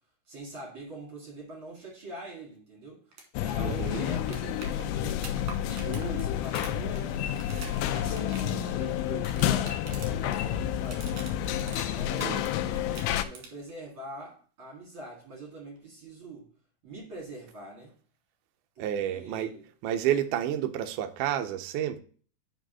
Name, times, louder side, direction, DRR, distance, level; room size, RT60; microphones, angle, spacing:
voice 1, 0.3-5.3 5.6-7.3 7.9-11.1 11.6-16.5 16.8-18.0 18.8-19.7, right 2 dB, 40° right, 2.3 m, -43 dB
sound 1, 3.1-3.3 3.5-3.6 3.8-10.4 10.7-12.5 12.8-13.7 15.8-15.9, right 5 dB, 60° right, 2.3 m, -45 dB
sound 2, 3.3-13.2, left 11 dB, 85° left, 2.4 m, -30 dB
voice 2, 3.6-4.0 12.2-12.4 18.8-19.5 19.8-22.0, right 10 dB, 85° right, 1.7 m, -30 dB
5.4 x 5.2 x 6.0 m
omnidirectional pair, 4.4 m